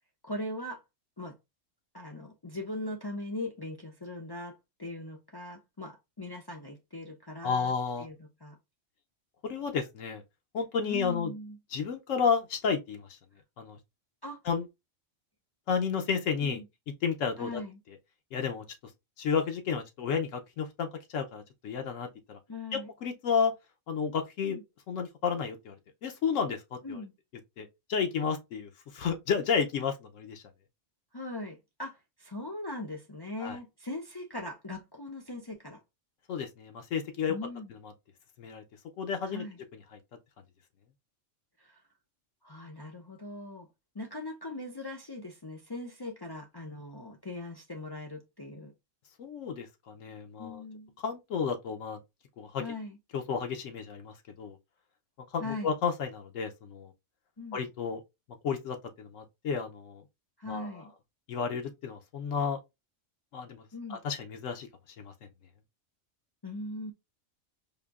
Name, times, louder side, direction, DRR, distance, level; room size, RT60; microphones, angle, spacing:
voice 1, 0.2-0.8 1.2-1.3 1.9-4.5 4.8-8.2 8.4-8.6 10.9-11.6 14.2-14.4 16.4-16.7 17.4-17.8 22.5-22.9 24.5-24.6 26.8-27.1 28.2-28.3 31.1-35.8 37.3-37.7 39.3-39.6 41.6-41.8 42.4-43.7 43.9-48.7 50.4-50.9 52.6-53.0 55.4-55.7 57.4-57.6 60.4-60.9 63.7-64.0 66.4-66.9, left 2 dB, 40° left, 0.3 m, -40 dB
voice 2, 7.4-8.1 9.4-10.2 10.5-11.3 11.7-13.1 13.6-13.8 14.4-14.7 15.7-16.6 17.0-17.6 18.3-18.6 19.2-22.4 22.7-23.5 23.9-24.6 24.9-25.8 26.0-27.0 27.6-30.4 33.4-33.6 36.3-37.4 38.4-38.6 39.0-39.4 49.2-50.6 51.0-52.0 52.4-52.6 53.1-54.6 55.3-56.9 57.5-58.0 58.4-60.0 60.5-60.7 61.3-62.6 63.3-63.6 63.9-64.7 65.0-65.1, left 6 dB, 80° left, 1.0 m, -32 dB
4.9 x 2.6 x 2.3 m
omnidirectional pair, 1.3 m